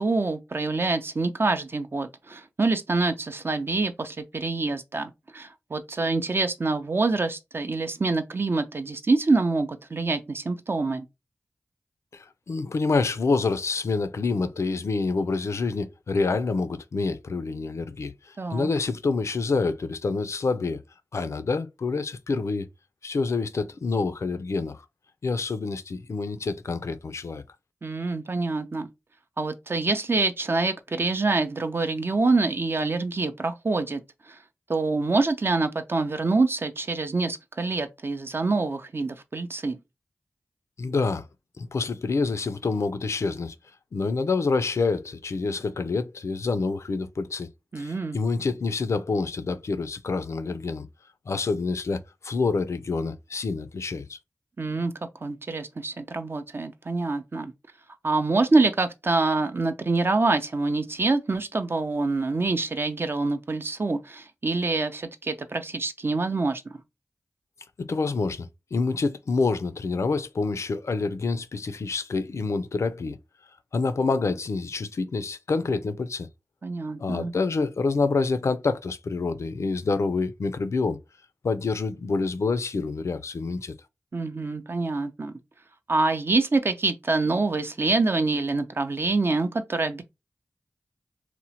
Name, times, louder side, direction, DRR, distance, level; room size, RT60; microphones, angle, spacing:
voice 1, 0.0-11.1 18.4-18.7 27.8-28.9 29.4-34.4 34.7-39.8 47.7-48.2 54.6-54.9 55.2-57.5 58.0-66.6 76.6-77.3 84.1-85.3 85.9-90.0, right 3 dB, 45° right, 0.4 m, -26 dB
voice 2, 12.1-20.8 21.1-22.7 23.0-24.8 25.2-27.4 40.8-41.3 41.6-43.6 43.9-47.5 47.8-50.9 51.3-54.2 67.8-73.2 73.7-76.3 77.0-81.0 81.4-83.7, left 4 dB, 65° left, 0.3 m, -27 dB
2.9 x 2.1 x 2.7 m
cardioid pair, 40°, 5 cm